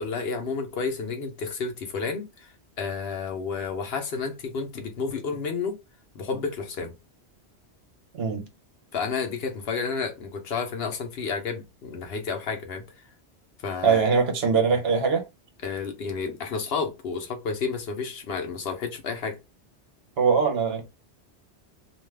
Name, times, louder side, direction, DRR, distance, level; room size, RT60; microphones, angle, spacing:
voice 1, 0.0-5.8 6.1-6.9 8.9-12.8 13.6-14.0 15.6-19.4, left 5 dB, 65° left, 0.9 m, -31 dB
voice 2, 13.8-15.3 20.2-20.8, right 5 dB, 65° right, 1.0 m, -22 dB
2.6 x 2.4 x 3.2 m
omnidirectional pair, 1.1 m